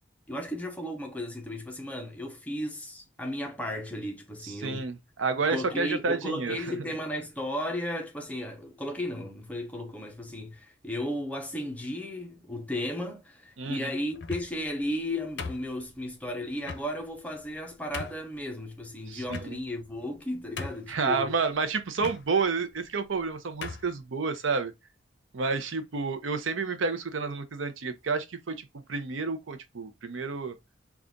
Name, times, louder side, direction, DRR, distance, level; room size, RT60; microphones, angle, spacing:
voice 1, 0.3-4.9 5.5-21.3, left 1 dB, 10° left, 0.7 m, -35 dB
voice 2, 4.4-6.6 13.6-13.9 19.1-19.6 20.9-24.7 25.3-30.6, right 4 dB, 85° right, 0.6 m, -30 dB
sound 1, 14.1-14.7 15.4-16.1 16.6-16.9 17.5-17.6 17.9-18.3 19.3-19.8 20.2-20.3 20.6-21.0 22.0-22.2 23.1-23.2 23.6-23.9, left 4 dB, 60° left, 0.6 m, -38 dB
3.9 x 2.4 x 3.6 m
head